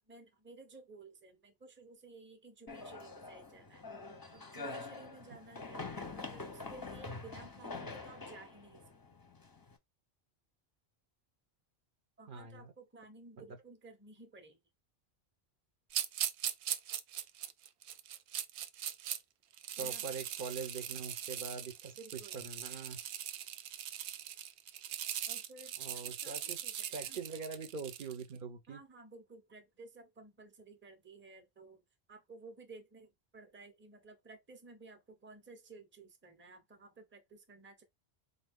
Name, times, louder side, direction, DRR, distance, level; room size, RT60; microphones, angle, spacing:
voice 1, 0.0-3.9 4.3-9.0 12.2-14.6 19.8-20.0 22.0-22.4 25.3-27.2 28.7-31.8 32.1-37.8, right 3 dB, 15° right, 0.7 m, -55 dB
sound 1, 2.7-9.7, left 3 dB, 25° left, 0.6 m, -45 dB
voice 2, 12.3-12.7 13.4-13.5 19.8-22.0 22.3-23.0 25.8-26.6 26.9-28.8, right 5 dB, 55° right, 0.8 m, -43 dB
sound 2, 15.9-19.2 19.5-28.2, right 10 dB, 85° right, 0.8 m, -40 dB
4.2 x 2.6 x 3.5 m
omnidirectional pair, 1.1 m